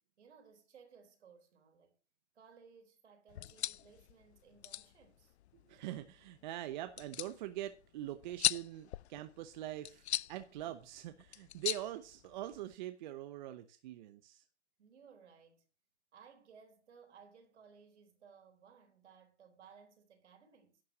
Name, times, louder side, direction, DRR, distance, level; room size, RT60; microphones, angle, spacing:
voice 1, 0.2-2.0 2.3-5.4 14.8-15.6 16.1-20.8, right 6 dB, 70° right, 3.9 m, -60 dB
sound 1, 3.3-12.7, left 13 dB, 65° left, 0.5 m, -41 dB
voice 2, 5.7-14.4, right 13 dB, 40° right, 0.9 m, -43 dB
11.5 x 7.0 x 6.1 m
hypercardioid pair, 135°, 35 cm